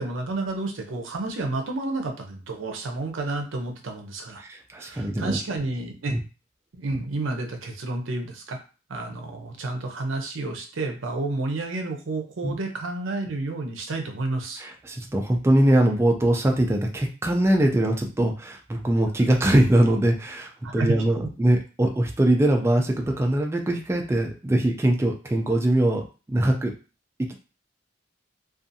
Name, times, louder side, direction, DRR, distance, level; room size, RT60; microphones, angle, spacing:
voice 1, 0.0-4.4 4.8-6.2 6.7-8.6 8.9-14.6 20.6-21.0 21.2-21.3, right 2 dB, 80° right, 4 dB, 0.6 m, -30 dB
voice 2, 4.4-5.4 6.1-6.2 12.4-12.6 14.6-26.7 27.2-27.4, right 1 dB, 15° right, 2 dB, 0.3 m, -22 dB
2.5 x 2.3 x 2.6 m, 0.34 s
head